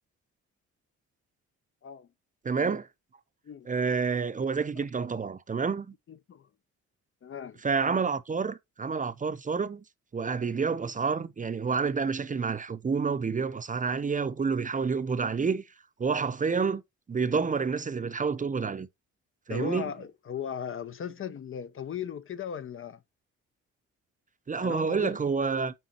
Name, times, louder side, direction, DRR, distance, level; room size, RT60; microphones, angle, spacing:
voice 1, 2.4-2.9 3.7-5.9 7.6-9.8 10.1-15.6 16.0-16.8 17.1-18.9 19.5-19.9 24.5-25.7, right 5 dB, 25° right, 0.7 m, -29 dB
voice 2, 6.1-6.5 7.2-7.6 19.5-23.0 24.6-25.2, left 8 dB, 45° left, 0.7 m, -37 dB
9.0 x 3.9 x 4.3 m
cardioid pair, 90°, 30 cm